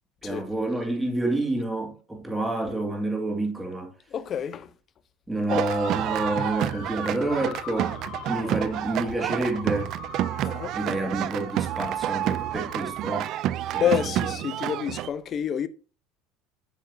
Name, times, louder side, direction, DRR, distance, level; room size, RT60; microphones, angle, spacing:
voice 1, 0.2-3.9 5.3-8.0 8.2-9.9 10.7-13.3 13.7-14.3, right 2 dB, 10° right, 2.1 m, -29 dB
voice 2, 4.1-4.7 5.5-5.7 10.4-10.8 13.8-15.7, left 9 dB, 40° left, 0.6 m, -28 dB
sound 1, 5.5-15.1, right 13 dB, 55° right, 0.4 m, -29 dB
sound 2, 5.6-13.0, left 6 dB, 55° left, 2.4 m, -42 dB
8.2 x 6.3 x 2.7 m
supercardioid pair, 105°, 0 cm